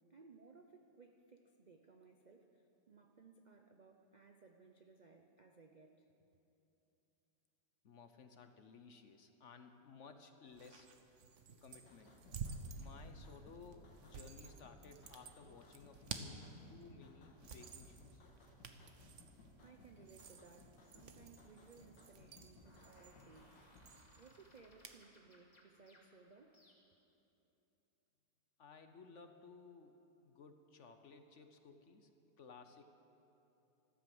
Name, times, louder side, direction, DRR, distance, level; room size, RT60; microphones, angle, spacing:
voice 1, 0.0-6.1 19.6-23.7 24.2-26.6, right 4 dB, 70° right, 4 dB, 0.4 m, -62 dB
voice 2, 7.8-10.9 11.6-12.1 12.8-18.2 28.6-32.1 32.4-32.9, left 5 dB, 55° left, 7 dB, 1.0 m, -58 dB
sound 1, 10.5-25.0, right 5 dB, 50° right, 1.1 m, -53 dB
sound 2, 11.7-23.9, left 2 dB, 85° left, 2.2 m, -63 dB
sound 3, 22.6-27.1, left 1 dB, 25° left, 2.4 m, -68 dB
14.0 x 12.5 x 7.8 m, 3.0 s
omnidirectional pair, 1.8 m